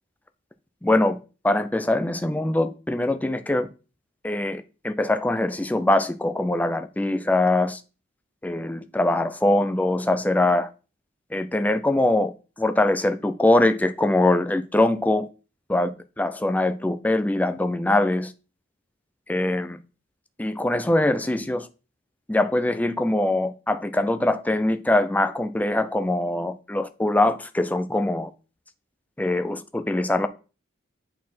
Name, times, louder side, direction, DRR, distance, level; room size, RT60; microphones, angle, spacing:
voice 1, 0.8-1.2 1.4-3.7 4.2-7.8 8.4-10.7 11.3-12.3 12.6-15.3 15.7-18.3 19.3-19.8 20.4-21.7 22.3-28.3 29.2-30.3, left 2 dB, 10° left, 0.4 m, -23 dB
8.4 x 4.1 x 4.2 m
head